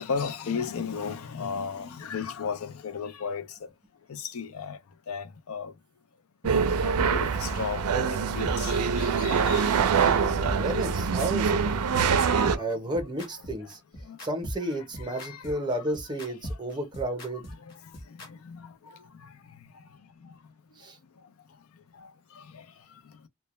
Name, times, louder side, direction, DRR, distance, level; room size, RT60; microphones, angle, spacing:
voice 1, 0.0-3.4 4.1-4.8 5.1-5.7 6.8-9.7 10.1-10.2 15.1-15.4 18.5-18.6, left 6 dB, 75° left, 0.4 m, -34 dB
sound 1, 6.4-6.5 6.9-7.0 7.4-7.5 7.9-8.0 8.4-8.6 8.9-9.0 9.4-9.5 9.9-10.0 10.4-18.3, equal, 45° left, 0.9 m, -38 dB
sound 2, 6.4-12.6, right 6 dB, 90° right, 0.4 m, -24 dB
voice 2, 10.5-11.6 12.5-13.8 14.2-17.5 20.8-21.0, right 1 dB, 20° right, 0.6 m, -32 dB
2.1 x 2.1 x 2.9 m
head